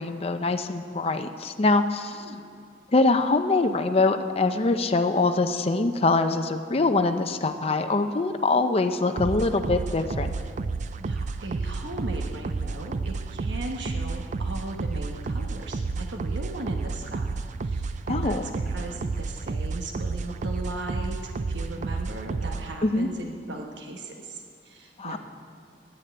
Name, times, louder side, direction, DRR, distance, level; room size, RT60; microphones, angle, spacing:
voice 1, 0.0-2.2 2.9-10.3 18.1-18.4 22.8-23.1 25.0-25.2, left 3 dB, 35° left, 7 dB, 0.6 m, -24 dB
voice 2, 2.0-2.5 11.0-25.2, right 2 dB, 80° right, 2 dB, 1.1 m, -38 dB
sound 1, 9.2-22.7, right 3 dB, 45° right, 0.4 m, -31 dB
10.5 x 10.0 x 8.6 m, 2.2 s
head